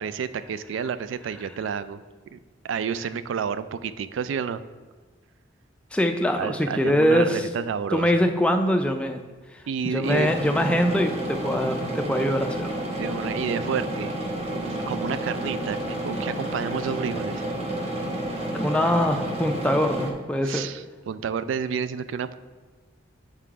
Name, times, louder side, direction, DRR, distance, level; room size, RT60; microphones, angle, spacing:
voice 1, 0.0-2.0 2.3-2.4 2.6-4.6 6.4-8.1 9.7-10.3 13.0-14.2 14.5-15.8 16.0-17.4 20.4-22.4, right 6 dB, 85° right, 14 dB, 0.3 m, -30 dB
voice 2, 5.9-7.5 7.9-9.2 9.5-12.8 18.5-20.7, equal, 5° left, 5 dB, 0.3 m, -23 dB
sound 1, 10.0-20.1, right 1 dB, 35° right, 0.7 m, -30 dB
6.9 x 3.8 x 4.6 m, 1.4 s
head